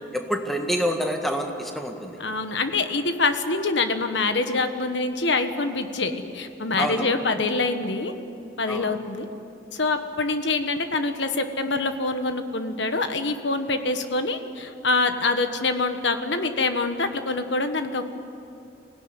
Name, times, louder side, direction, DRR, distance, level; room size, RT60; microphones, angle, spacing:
voice 1, 0.1-2.2 6.8-7.1 8.7-8.9, equal, ahead, 3 dB, 1.7 m, -27 dB
voice 2, 2.2-8.1 8.6-9.3 9.7-18.1, left 3 dB, 80° left, 8 dB, 1.5 m, -25 dB
24.5 x 17.0 x 9.9 m, 2.6 s
head